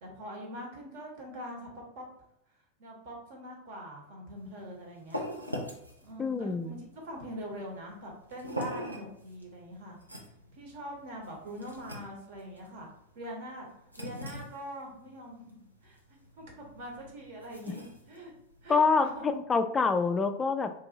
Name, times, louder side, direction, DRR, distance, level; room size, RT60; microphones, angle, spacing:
voice 1, 0.0-2.1 2.8-5.2 6.0-6.8 7.0-10.0 10.5-12.9 13.1-13.7 14.0-16.0 16.4-18.3 18.6-19.3, equal, 50° right, 0 dB, 1.1 m, -43 dB
sound 1, 4.4-19.4, equal, 90° right, 0.6 m, -43 dB
voice 2, 6.2-6.7 17.7-17.8 18.7-20.7, left 4 dB, 15° left, 9 dB, 0.3 m, -26 dB
3.9 x 2.6 x 2.7 m, 0.79 s
figure-of-eight pair, 90°, 0 cm